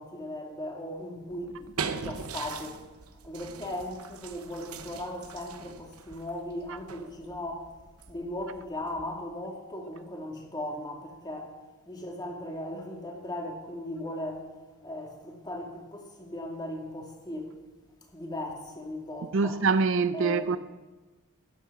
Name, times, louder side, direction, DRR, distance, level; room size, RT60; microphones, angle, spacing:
voice 1, 0.0-2.8 3.2-7.7 8.1-11.5 11.9-14.5 14.8-17.5 18.1-19.6 20.1-20.6, left 1 dB, 20° left, 2.4 m, -38 dB
sound 1, 1.3-9.4, right 6 dB, 85° right, 0.9 m, -41 dB
voice 2, 19.3-20.6, right 4 dB, 60° right, 0.5 m, -24 dB
15.0 x 11.0 x 6.0 m
head